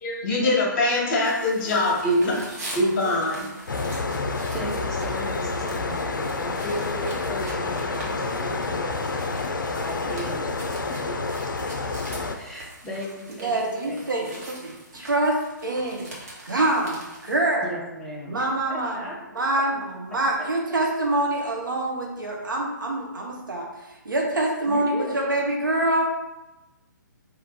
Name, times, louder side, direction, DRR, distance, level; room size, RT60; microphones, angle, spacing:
voice 1, 0.0-3.5, left 1 dB, 40° left, -2 dB, 1.4 m, -23 dB
sound 1, 1.2-17.4, right 1 dB, 50° right, 1.3 m, -43 dB
sound 2, 3.7-12.4, left 3 dB, 75° left, 0.5 m, -28 dB
voice 2, 4.5-9.3 9.7-10.6 11.1-11.4 12.1-14.4 17.6-18.4 18.7-19.2 24.6-25.2, equal, 5° left, -6 dB, 0.7 m, -36 dB
voice 3, 13.4-16.1 16.4-17.7 18.3-19.0 19.3-23.7 24.0-26.1, right 1 dB, 80° right, -1 dB, 0.8 m, -25 dB
3.4 x 2.7 x 4.0 m, 1.0 s
figure-of-eight pair, 135°, 11 cm